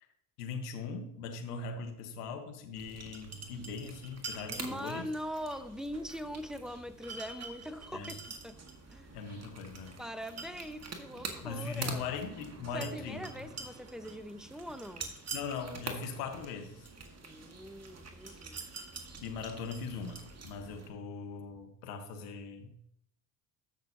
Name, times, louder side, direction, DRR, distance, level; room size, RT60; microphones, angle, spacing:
voice 1, 0.4-5.0 7.9-8.1 9.1-10.0 11.4-13.2 15.3-16.9 19.2-22.9, left 5 dB, 75° left, 4 dB, 1.4 m, -40 dB
sound 1, 2.8-20.9, right 4 dB, 30° right, 1.9 m, -45 dB
voice 2, 4.5-8.6 8.9-9.2 10.0-12.2 12.7-15.1 17.2-18.7, equal, ahead, 11 dB, 0.9 m, -42 dB
14.5 x 6.3 x 2.9 m, 0.73 s
hypercardioid pair, 65°, 47 cm